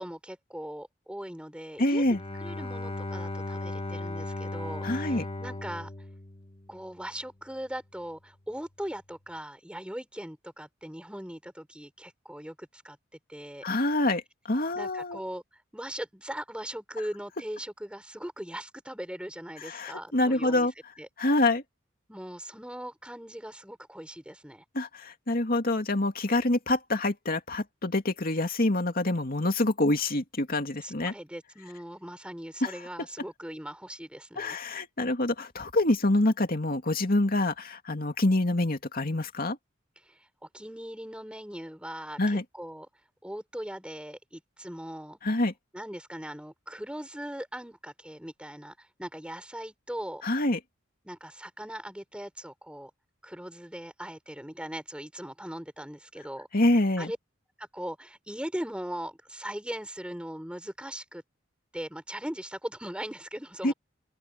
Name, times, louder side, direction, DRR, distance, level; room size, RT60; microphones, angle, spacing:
voice 1, 0.0-2.0 2.4-5.9 6.7-13.0 13.3-13.7 14.7-15.4 15.7-20.7 21.0-21.1 22.1-24.6 30.8-34.6 40.0-40.2 40.5-42.9 43.2-45.2 45.7-50.2 51.0-52.9 53.2-56.5 57.0-57.2 57.6-61.2 61.7-63.7, equal, 5° right, 6.5 m, -39 dB
voice 2, 1.8-2.2 4.8-5.2 13.6-14.2 14.5-15.2 19.6-20.7 21.2-21.6 24.7-31.1 32.6-32.7 34.4-39.6 42.2-42.4 45.2-45.5 50.2-50.6 56.5-57.1 63.6-63.7, left 2 dB, 50° left, 2.5 m, -26 dB
Bowed string instrument, 2.0-7.0, left 2 dB, 30° left, 1.5 m, -37 dB
open air
head